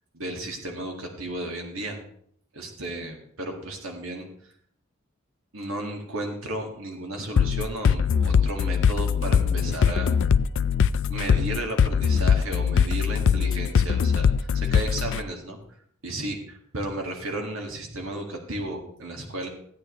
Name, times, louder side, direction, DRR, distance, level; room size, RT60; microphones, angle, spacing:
voice 1, 0.1-2.0 2.5-4.3 5.5-10.1 11.1-15.6 16.0-19.5, right 1 dB, 75° right, 1 dB, 1.8 m, -34 dB
sound 1, 7.4-15.2, left 7 dB, 65° left, 0.4 m, -21 dB
15.5 x 9.1 x 3.1 m, 0.65 s
head